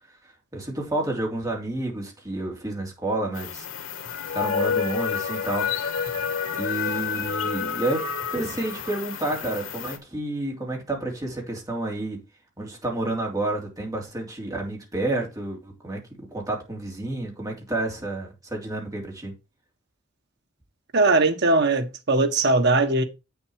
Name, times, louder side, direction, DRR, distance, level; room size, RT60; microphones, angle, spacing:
voice 1, 0.5-3.7 4.3-5.7 6.6-12.2 12.6-19.3, right 2 dB, 20° right, 3.1 m, -30 dB
sound 1, 3.3-10.0, left 6 dB, 80° left, 1.7 m, -29 dB
voice 2, 20.9-23.0, right 2 dB, 55° right, 1.3 m, -20 dB
8.1 x 7.0 x 4.7 m
head